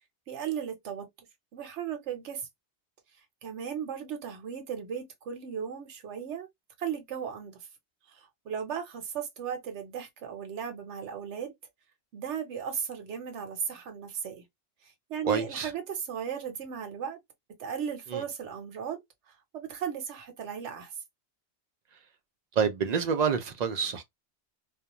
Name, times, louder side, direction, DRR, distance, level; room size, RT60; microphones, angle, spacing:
voice 1, 0.3-1.1 1.5-2.4 3.4-6.5 6.8-7.6 8.1-11.5 12.1-14.4 15.1-17.2 17.6-19.0 19.5-20.9, right 8 dB, 85° right, 1.0 m, -36 dB
voice 2, 15.2-15.7 18.1-18.2 22.6-24.0, right 6 dB, 55° right, 0.5 m, -27 dB
2.3 x 2.1 x 2.8 m
omnidirectional pair, 1.1 m